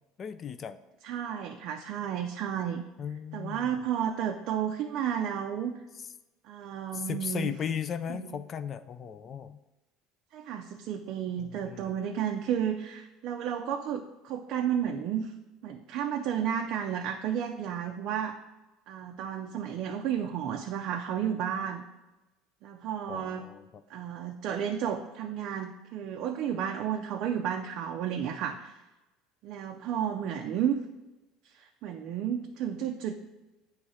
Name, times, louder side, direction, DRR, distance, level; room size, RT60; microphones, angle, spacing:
voice 1, 0.2-0.8 3.0-3.8 6.9-9.6 11.4-11.9 23.1-23.8, left 8 dB, 30° left, 12 dB, 0.3 m, -36 dB
voice 2, 1.0-2.8 3.3-5.8 6.5-7.5 8.1-8.4 10.3-15.3 15.6-18.4 18.9-21.8 22.6-23.4 23.9-28.7 29.4-30.8 31.6-33.2, right 9 dB, 50° right, 3 dB, 0.4 m, -32 dB
8.4 x 3.1 x 4.8 m, 1.0 s
cardioid pair, 150°, 0 cm